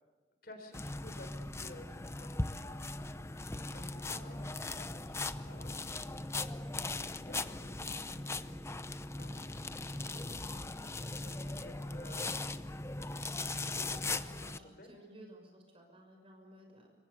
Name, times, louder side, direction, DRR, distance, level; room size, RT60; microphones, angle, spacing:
voice 1, 0.4-2.3 3.7-6.2 6.9-8.7 9.2-12.6 13.5-15.0, left 1 dB, 55° left, 6 dB, 4.0 m, -54 dB
sound 1, 0.7-14.6, left 2 dB, 15° left, 0.7 m, -39 dB
sound 2, 9.7-10.1 11.1-11.5 12.6-12.9, equal, 5° right, 2.4 m, -62 dB
voice 2, 13.0-16.9, right 1 dB, 30° right, 3 dB, 6.1 m, -56 dB
26.5 x 23.5 x 6.9 m, 1.3 s
head